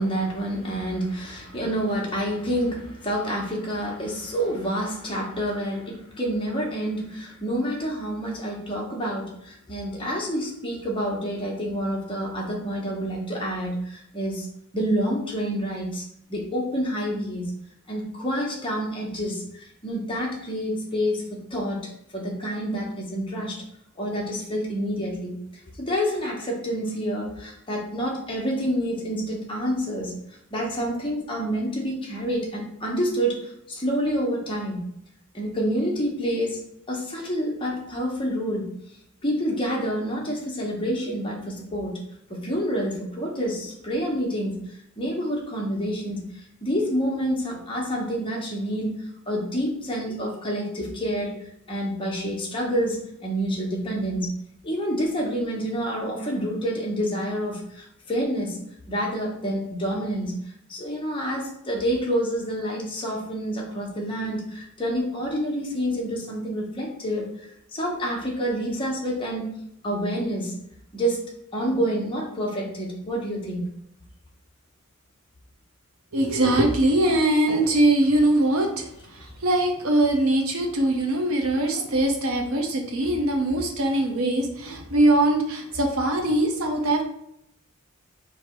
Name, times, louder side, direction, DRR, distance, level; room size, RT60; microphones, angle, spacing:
voice 1, 0.0-14.5 14.7-16.0 16.3-17.4 17.9-23.6 24.0-25.4 25.8-30.1 30.5-34.8 35.3-36.6 36.9-38.7 39.2-42.0 42.3-44.6 45.0-51.4 51.7-54.3 54.6-58.6 58.9-60.3 60.7-69.5 69.8-70.6 70.9-73.6, equal, 25° left, -2 dB, 0.9 m, -28 dB
voice 2, 76.1-87.0, right 1 dB, 70° right, 3 dB, 0.7 m, -22 dB
3.2 x 2.7 x 4.4 m, 0.76 s
head